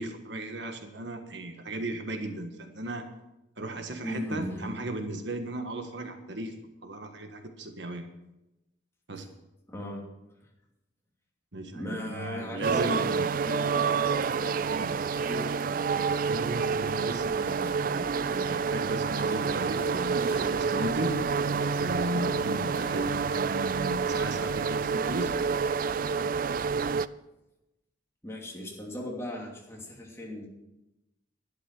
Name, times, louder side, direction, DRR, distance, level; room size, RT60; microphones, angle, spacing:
voice 1, 0.0-3.1 3.6-8.1 9.1-9.3 11.5-13.3 14.7-14.9 16.3-21.2 21.7-25.3, right 1 dB, 65° right, 6 dB, 1.5 m, -36 dB
voice 2, 4.0-4.7 9.7-10.0 11.7-14.7 15.2-15.7 28.2-30.5, left 1 dB, 15° left, -2 dB, 2.9 m, -37 dB
sound 1, 12.6-27.1, right 5 dB, 45° right, 0.4 m, -28 dB
sound 2, 14.0-23.0, equal, 10° right, 3.4 m, -52 dB
12.0 x 11.5 x 6.2 m, 0.93 s
head